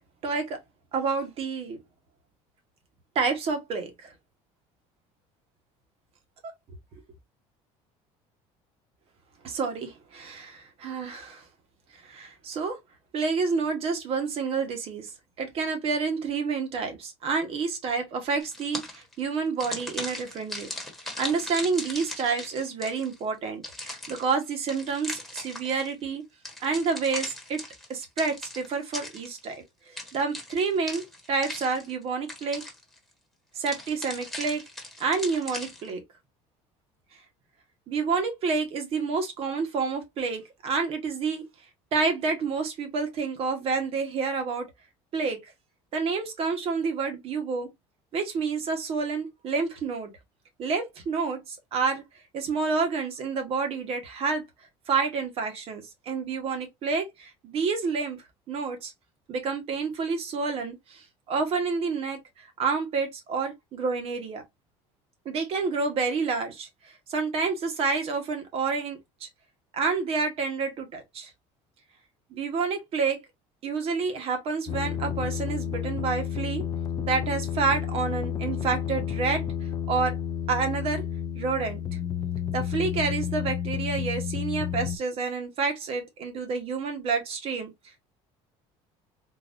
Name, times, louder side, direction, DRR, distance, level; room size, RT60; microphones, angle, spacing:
voice 1, 0.2-0.6 0.9-1.8 3.1-4.1 9.4-11.4 11.9-12.8 13.1-15.1 15.4-20.7 21.2-26.2 26.6-27.6 27.9-32.6 33.5-34.6 35.0-36.0 37.9-41.5 41.9-44.7 45.1-45.5 45.9-47.7 48.1-50.1 50.6-52.0 52.3-54.4 54.9-58.9 59.3-64.4 65.2-69.3 69.7-71.3 72.3-73.2 73.6-76.6 77.0-79.4 79.9-80.2 80.5-81.0 81.4-81.8 82.5-87.7, right 4 dB, 50° right, 1.1 m, -29 dB
sound 1, 18.4-19.1 19.6-23.2 23.6-25.9 26.4-29.6 30.0-32.0 32.3-33.0 33.7-35.9, left 1 dB, ahead, 1.2 m, -38 dB
sound 2, 74.7-85.0, left 8 dB, 30° left, 0.3 m, -31 dB
3.9 x 2.5 x 2.5 m
cardioid pair, 140°, 13 cm